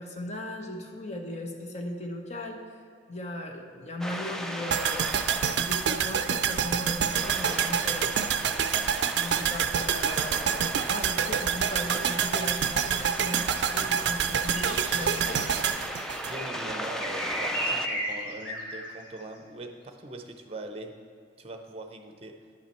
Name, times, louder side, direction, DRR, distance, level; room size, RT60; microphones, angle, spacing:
voice 1, 0.0-2.6 3.1-8.3 9.1-15.4, left 1 dB, 40° left, 3 dB, 0.9 m, -37 dB
sound 1, 4.0-17.9, equal, 5° left, 0.4 m, -38 dB
sound 2, 4.7-16.9 17.2-17.3, right 8 dB, 70° right, 0.4 m, -27 dB
sound 3, 14.5-18.8, equal, 70° left, 1.7 m, -35 dB
voice 2, 16.2-20.9 21.4-22.4, right 2 dB, 35° right, 5 dB, 0.7 m, -41 dB
10.0 x 5.7 x 4.4 m, 2.3 s
head